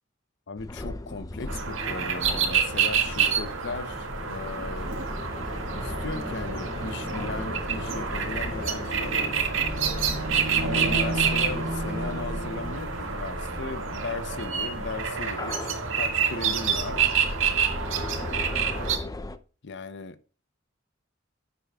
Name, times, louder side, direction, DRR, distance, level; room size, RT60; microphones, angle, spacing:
voice 1, 0.5-4.9 5.7-9.7 10.6-17.1 19.6-20.3, left 3 dB, 60° left, 0.8 m, -37 dB
sound 1, 0.6-19.4, left 1 dB, 20° left, 0.5 m, -37 dB
sound 2, 1.5-19.0, right 6 dB, 75° right, 2.0 m, -28 dB
10.5 x 8.5 x 2.4 m
head